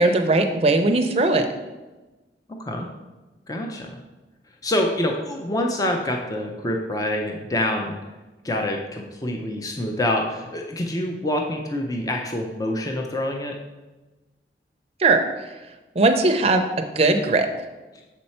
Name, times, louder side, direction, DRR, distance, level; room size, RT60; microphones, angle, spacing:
voice 1, 0.0-1.5 15.0-15.5 15.9-16.6 17.0-17.5, right 2 dB, 35° right, 5 dB, 0.6 m, -19 dB
voice 2, 3.5-4.0 4.6-8.0 8.4-13.6, left 1 dB, 20° left, 2 dB, 0.5 m, -26 dB
7.1 x 4.4 x 4.3 m, 1.1 s
head